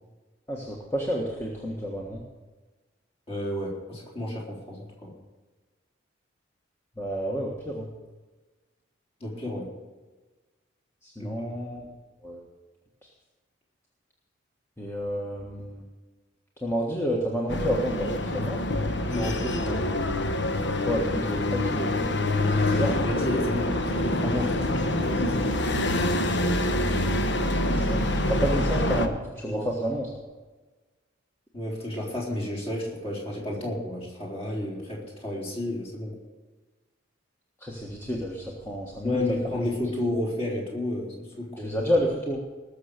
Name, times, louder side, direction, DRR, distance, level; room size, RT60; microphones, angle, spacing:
voice 1, 0.5-2.2 7.0-7.9 11.0-11.9 12.2-12.4 14.8-15.8 16.6-18.6 20.8-22.2 22.7-23.1 27.5-30.1 37.6-39.6 41.6-42.4, equal, 10° left, -1 dB, 1.5 m, -30 dB
voice 2, 3.3-5.1 9.2-9.7 11.2-11.3 19.1-19.8 22.5-25.5 26.0-26.4 29.5-29.7 31.5-36.2 39.0-41.7, left 1 dB, 30° left, -3 dB, 4.1 m, -31 dB
sound 1, 17.5-29.1, left 1 dB, 60° left, 1.1 m, -26 dB
19.5 x 6.8 x 6.6 m, 1.3 s
head